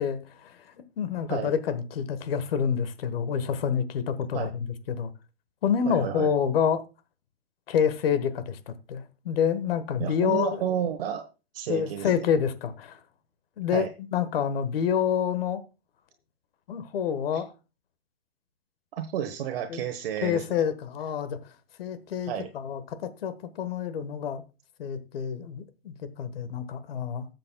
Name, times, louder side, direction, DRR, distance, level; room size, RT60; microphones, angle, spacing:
voice 1, 0.0-4.5 4.9-5.1 5.6-6.8 7.7-10.6 11.7-13.0 13.6-15.6 16.7-17.5 19.7-19.8 20.2-21.4 21.8-24.4 24.8-27.3, left 7 dB, 65° left, 1.4 m, -28 dB
voice 2, 5.9-6.3 10.0-11.3 11.5-12.1 13.7-13.9 17.3-17.4 18.9-20.4 22.3-22.5, right 9 dB, 65° right, 1.2 m, -31 dB
18.5 x 7.5 x 2.3 m
hypercardioid pair, 150°, 31 cm